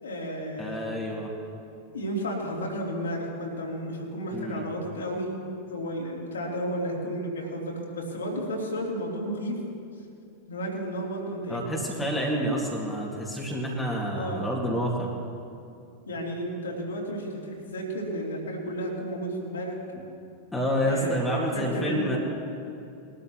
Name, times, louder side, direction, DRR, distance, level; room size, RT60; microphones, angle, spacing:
voice 1, 0.0-0.9 1.9-5.3 5.7-9.6 10.5-11.6 14.1-14.5 16.1-19.8 20.8-22.1, equal, 70° left, -2 dB, 3.1 m, -32 dB
voice 2, 0.6-1.3 4.3-4.6 11.5-15.2 20.5-22.2, equal, 5° left, -4 dB, 2.2 m, -28 dB
21.5 x 12.5 x 3.1 m, 2.6 s
figure-of-eight pair, 90°, 0 cm